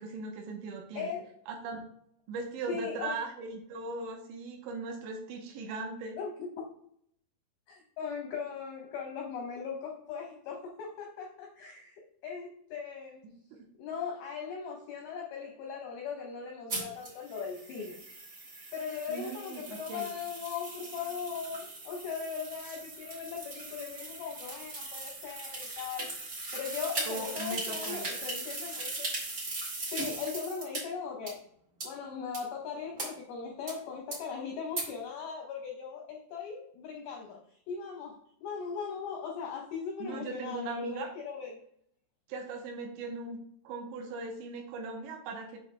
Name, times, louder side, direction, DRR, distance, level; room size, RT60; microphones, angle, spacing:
voice 1, 0.0-1.1 1.5-1.9 2.3-6.2 13.2-13.6 19.1-20.1 27.1-28.1 40.0-41.1 42.3-45.6, right 3 dB, 80° right, 2 dB, 3.0 m, -39 dB
voice 2, 1.0-1.3 2.7-3.2 6.2-6.5 7.7-12.0 12.2-13.2 13.8-18.0 18.7-26.1 26.5-29.1 29.9-31.4 31.8-37.4 37.7-41.6, left 6 dB, 80° left, 0 dB, 2.2 m, -39 dB
sound 1, 16.7-30.8 31.3-31.4 31.8-31.9 32.3-32.4 33.0-33.1 33.7-33.8 34.1-34.2 34.8-34.9, right 2 dB, 50° right, 1.0 m, -39 dB
7.8 x 5.4 x 3.3 m, 0.67 s
omnidirectional pair, 5.5 m